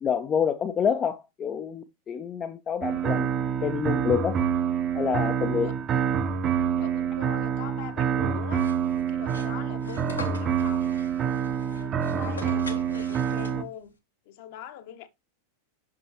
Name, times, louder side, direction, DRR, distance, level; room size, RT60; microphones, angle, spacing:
voice 1, 0.0-3.3 3.6-4.4 4.9-5.7, left 7 dB, 25° left, 0.5 m, -27 dB
sound 1, 2.8-13.6, right 8 dB, 30° right, 0.7 m, -27 dB
voice 2, 6.7-8.6 8.9-10.9 11.6-13.9 14.3-15.1, left 11 dB, 50° left, 0.9 m, -42 dB
sound 2, 8.5-13.9, left 3 dB, 80° left, 1.2 m, -44 dB
6.1 x 6.0 x 2.9 m
figure-of-eight pair, 90°, 0 cm